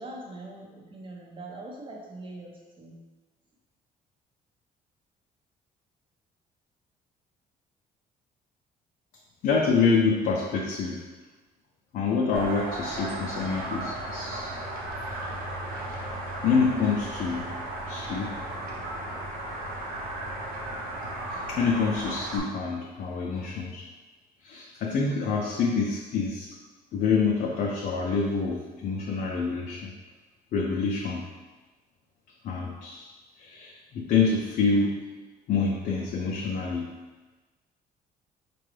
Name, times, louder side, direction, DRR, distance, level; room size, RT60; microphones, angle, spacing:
voice 1, 0.0-3.0, right 2 dB, 30° right, 0 dB, 0.7 m, -42 dB
voice 2, 9.4-11.0 11.9-14.5 16.4-17.5 17.9-18.3 21.3-23.8 24.4-26.5 26.9-29.9 30.5-31.2 32.4-33.1 33.4-35.0 35.5-36.9, left 5 dB, 60° left, -2 dB, 0.5 m, -26 dB
sound 1, 12.3-22.4, right 1 dB, 65° right, 0.9 m, -35 dB
4.8 x 2.2 x 3.2 m, 1.3 s
cardioid pair, 125°, 16 cm